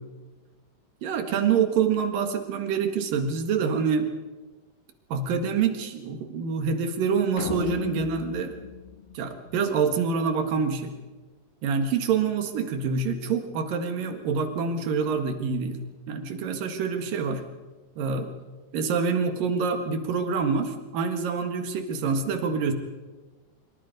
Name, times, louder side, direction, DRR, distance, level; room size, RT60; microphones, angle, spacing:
voice 1, 1.0-4.1 5.1-8.6 9.1-10.9 11.6-15.8 16.1-17.4 18.0-18.3 18.7-22.7, right 5 dB, 60° right, 7 dB, 3.2 m, -26 dB
sound 1, 7.4-9.8, left 8 dB, 60° left, 3.0 m, -37 dB
24.5 x 24.5 x 5.3 m, 1.2 s
omnidirectional pair, 4.8 m